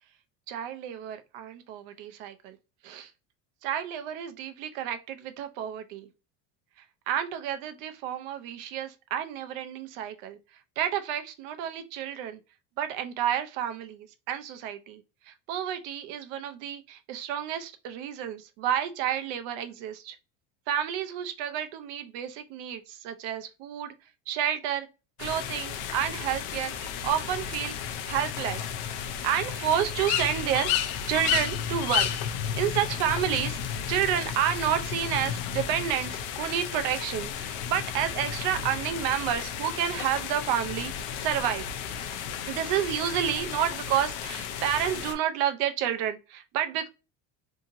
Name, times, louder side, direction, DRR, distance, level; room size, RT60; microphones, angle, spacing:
voice 1, 0.5-2.6 2.8-3.1 3.6-6.1 7.1-10.4 10.8-12.4 12.8-15.0 15.3-20.2 20.7-23.9 24.3-24.9 25.2-26.7 27.0-27.7 28.1-28.7 29.2-30.7 31.1-32.1 32.6-33.6 33.9-40.9 41.2-41.6 42.5-46.9, right 10 dB, 55° right, 0.5 m, -30 dB
sound 1, 25.2-45.1, left 8 dB, 65° left, 0.5 m, -33 dB
2.8 x 2.8 x 2.5 m
cardioid pair, 180°, 37 cm